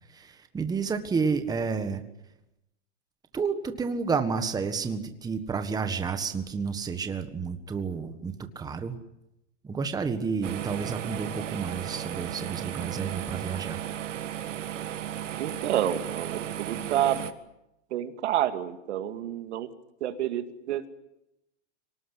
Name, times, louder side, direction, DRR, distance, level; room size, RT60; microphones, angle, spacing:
voice 1, 0.1-2.0 3.3-8.9 9.6-14.2, right 5 dB, 10° right, 8 dB, 1.5 m, -30 dB
sound 1, 10.4-17.3, right 11 dB, 85° right, 2.0 m, -35 dB
voice 2, 15.4-17.3 17.9-19.7 20.0-20.9, right 11 dB, 70° right, 9 dB, 2.3 m, -29 dB
25.0 x 19.0 x 10.0 m, 0.88 s
hypercardioid pair, 145°, 36 cm